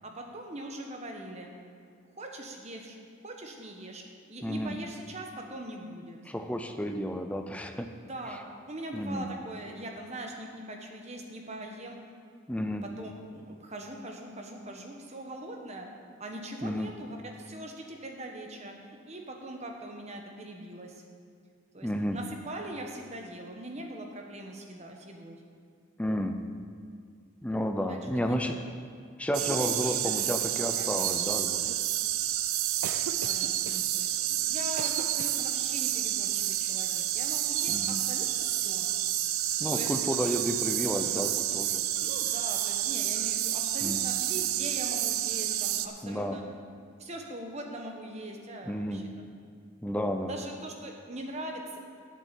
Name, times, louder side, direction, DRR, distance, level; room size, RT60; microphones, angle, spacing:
voice 1, 0.0-1.5 2.0-3.0 3.2-4.0 4.3-6.3 8.1-8.4 8.6-12.0 12.8-15.9 16.2-21.0 21.7-25.4 27.9-28.1 28.4-28.5 29.5-30.5 30.8-31.4 33.2-38.9 39.7-39.9 42.0-46.4 47.0-49.3 50.3-51.8, right 1 dB, 30° right, 2 dB, 1.1 m, -41 dB
voice 2, 4.4-4.8 6.3-7.9 8.9-9.3 12.5-12.9 16.6-16.9 21.8-22.2 26.0-26.4 27.4-28.6 29.2-31.6 37.7-38.0 39.6-41.8 43.8-44.1 46.0-46.4 48.6-49.1 49.8-50.3, equal, 5° left, 5 dB, 0.5 m, -31 dB
sound 1, 29.3-45.9, right 12 dB, 80° right, 0.5 m, -29 dB
8.3 x 7.4 x 8.3 m, 2.2 s
head